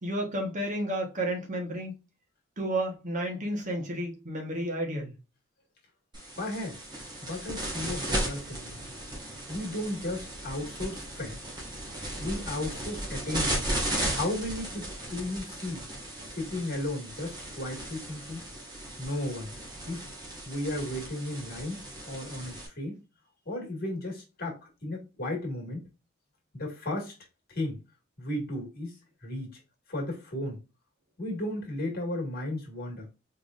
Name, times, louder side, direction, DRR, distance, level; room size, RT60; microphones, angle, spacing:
voice 1, 0.0-1.9 2.6-5.1, right 1 dB, 40° right, 1.3 m, -31 dB
sound 1, 6.1-22.7, right 1 dB, 20° right, 1.8 m, -36 dB
voice 2, 6.4-6.8 7.2-8.9 9.5-11.4 12.2-13.7 14.1-15.8 16.3-18.5 19.0-19.6 19.9-20.0 20.4-23.0 23.5-25.9 26.5-27.1 27.5-27.8 28.2-29.6 29.9-30.6 31.2-33.1, left 1 dB, 50° left, 2.0 m, -34 dB
4.5 x 3.7 x 2.5 m
head